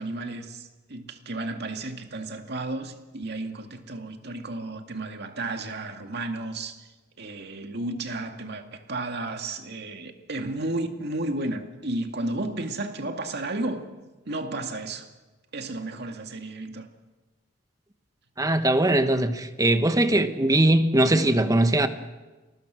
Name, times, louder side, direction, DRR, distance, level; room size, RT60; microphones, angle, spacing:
voice 1, 0.0-6.9 7.2-13.9 14.3-15.1 15.5-16.9, right 2 dB, 55° right, 2.2 m, -33 dB
voice 2, 18.4-21.9, right 1 dB, 20° right, 1.3 m, -21 dB
28.5 x 20.5 x 6.4 m
head